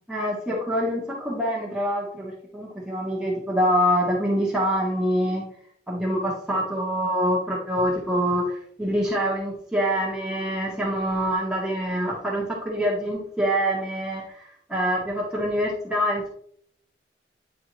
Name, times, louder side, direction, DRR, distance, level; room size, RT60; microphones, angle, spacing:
voice 1, 0.0-5.4 5.9-16.3, equal, 5° right, -4 dB, 0.9 m, -25 dB
9.2 x 3.5 x 3.0 m, 0.67 s
head